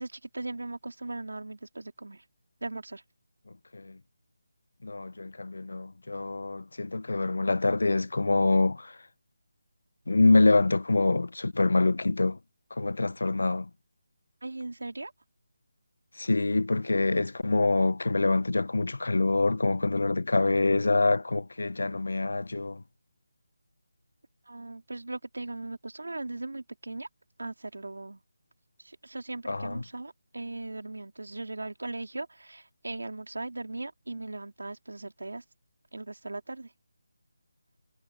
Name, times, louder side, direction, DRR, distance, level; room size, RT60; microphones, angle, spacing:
voice 1, 0.0-2.2 2.6-3.0 14.4-15.1 24.5-27.1 27.4-28.2 28.8-35.4 35.9-36.7, right 2 dB, 80° right, 3.2 m, -38 dB
voice 2, 4.8-9.0 10.1-12.4 12.7-13.7 16.2-22.8 29.5-29.8, left 3 dB, 70° left, 0.8 m, -25 dB
figure-of-eight pair, 160°, 0 cm